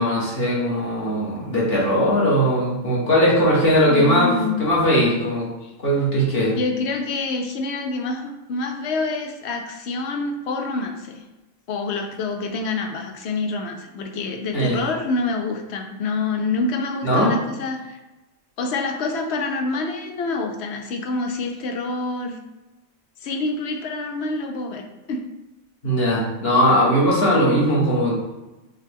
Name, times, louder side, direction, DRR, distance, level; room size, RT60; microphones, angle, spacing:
voice 1, 0.0-5.5 5.8-6.6 14.5-14.8 17.0-17.3 25.8-28.1, equal, 45° left, -5 dB, 1.3 m, -19 dB
voice 2, 3.9-4.7 5.6-5.7 6.5-11.2 11.7-18.0 18.6-22.4 23.2-25.2, left 3 dB, 65° left, 4 dB, 0.7 m, -27 dB
5.6 x 2.2 x 3.4 m, 1.0 s
omnidirectional pair, 1.4 m